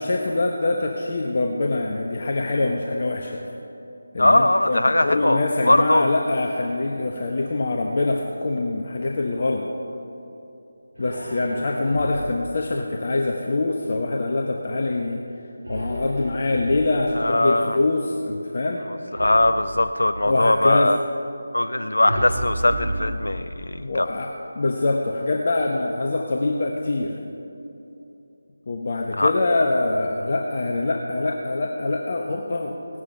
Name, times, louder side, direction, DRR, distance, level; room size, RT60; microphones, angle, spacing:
voice 1, 0.0-3.4 4.1-9.7 11.0-15.2 15.7-18.9 20.2-21.0 23.8-27.2 28.7-32.8, left 2 dB, 45° left, 1 dB, 1.0 m, -24 dB
voice 2, 4.2-6.1 17.2-17.8 19.2-21.0 21.5-24.1 29.2-29.3, left 1 dB, 75° left, 10 dB, 0.4 m, -20 dB
sound 1, 10.9-12.5 15.6-17.2 19.1-20.4 22.1-23.8, right 1 dB, 85° right, 3.6 m, -32 dB
16.5 x 11.0 x 5.6 m, 2.8 s
figure-of-eight pair, 160°, 0 cm